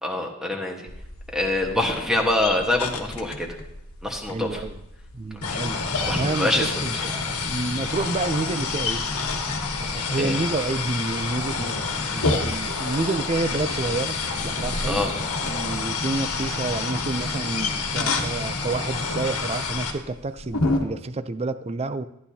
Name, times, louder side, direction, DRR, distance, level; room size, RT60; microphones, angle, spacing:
voice 1, 0.0-0.9 1.3-3.5 4.0-4.6 5.5-5.6 6.1-7.0 10.2-10.4 14.9-15.1, left 1 dB, ahead, 1 dB, 1.3 m, -25 dB
sound 1, 0.9-20.8, left 2 dB, 65° left, 1.3 m, -33 dB
voice 2, 4.3-4.8 5.1-5.8 6.1-9.1 9.9-15.1 15.4-22.1, right 3 dB, 30° right, 12 dB, 0.4 m, -29 dB
sound 2, 5.4-19.9, left 4 dB, 80° left, 1.4 m, -29 dB
14.5 x 10.0 x 2.8 m, 0.85 s
head